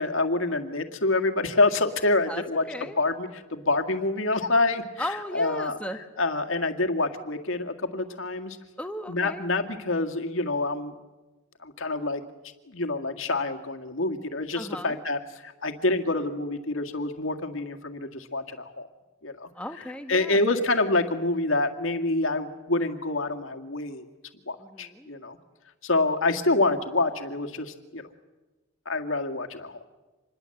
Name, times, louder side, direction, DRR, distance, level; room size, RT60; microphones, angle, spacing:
voice 1, 0.0-2.6 3.0-5.8 6.2-8.6 9.1-10.9 11.6-12.2 12.7-18.9 19.2-19.5 20.1-24.1 24.5-25.4 25.8-28.1 28.9-29.8, left 2 dB, 65° left, 5 dB, 2.0 m, -27 dB
voice 2, 2.3-3.0 5.0-6.0 8.8-9.5 14.5-15.0 19.5-20.4 24.6-25.1, left 1 dB, 5° left, 6 dB, 1.4 m, -36 dB
26.5 x 21.5 x 7.8 m, 1.2 s
head